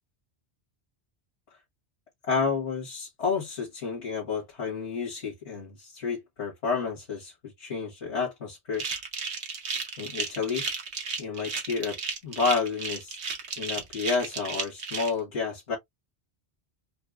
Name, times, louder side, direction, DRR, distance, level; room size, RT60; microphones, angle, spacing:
voice 1, 2.3-8.8 10.0-10.7 11.2-12.0 12.2-13.2 13.6-15.8, left 5 dB, 80° left, 1.8 m, -30 dB
sound 1, 8.7-15.1, right 5 dB, 75° right, 1.3 m, -33 dB
4.4 x 2.1 x 2.3 m
omnidirectional pair, 1.1 m